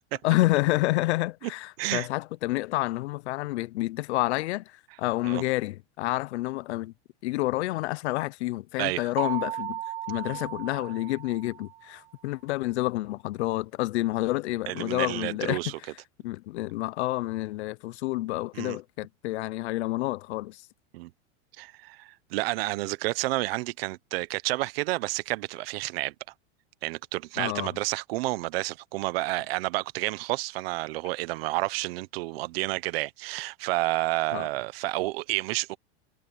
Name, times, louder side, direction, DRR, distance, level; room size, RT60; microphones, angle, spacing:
voice 1, 0.2-6.9 7.2-9.8 10.1-15.6 16.2-20.7 27.4-27.7 34.3-34.5, left 18 dB, 75° left, 0.6 m, -29 dB
sound 1, 9.2-11.9, right 12 dB, 20° right, 0.6 m, -36 dB
voice 2, 14.7-15.8 18.5-18.8 20.9-21.1 21.6-26.1 26.8-35.8, right 20 dB, 60° right, 1.0 m, -30 dB
supercardioid pair, 155°, 34 cm